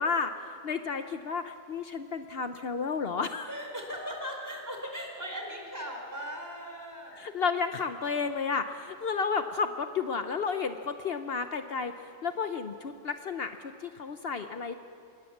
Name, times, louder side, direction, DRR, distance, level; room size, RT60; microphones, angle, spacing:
voice 1, 0.0-3.5 7.1-11.9 12.2-14.7, left 5 dB, 65° left, 8 dB, 1.0 m, -32 dB
voice 2, 3.5-7.2, equal, 15° right, 1 dB, 4.6 m, -38 dB
26.5 x 20.5 x 7.3 m, 2.4 s
omnidirectional pair, 1.1 m